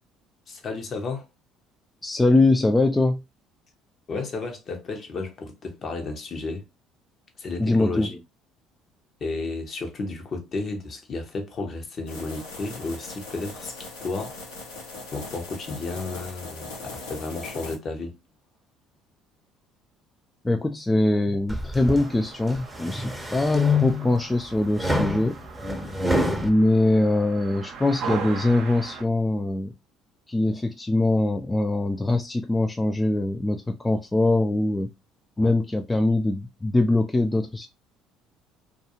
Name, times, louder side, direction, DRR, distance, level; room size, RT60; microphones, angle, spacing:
voice 1, 0.5-1.3 4.1-6.6 7.4-8.1 9.2-14.4 15.1-18.2 35.4-35.5, left 3 dB, 45° left, 0.8 m, -32 dB
voice 2, 2.0-3.2 7.6-8.2 20.4-25.4 26.4-29.7 30.3-34.9 35.4-37.7, left 2 dB, 15° left, 0.3 m, -22 dB
sound 1, 12.1-17.8, left 3 dB, 85° left, 0.9 m, -39 dB
sound 2, 21.5-22.0 22.6-24.2 24.8-26.5, left 2 dB, 5° right, 0.7 m, -25 dB
sound 3, 21.8-29.0, right 5 dB, 60° right, 0.6 m, -39 dB
2.4 x 2.3 x 2.8 m
hypercardioid pair, 65°, 0 cm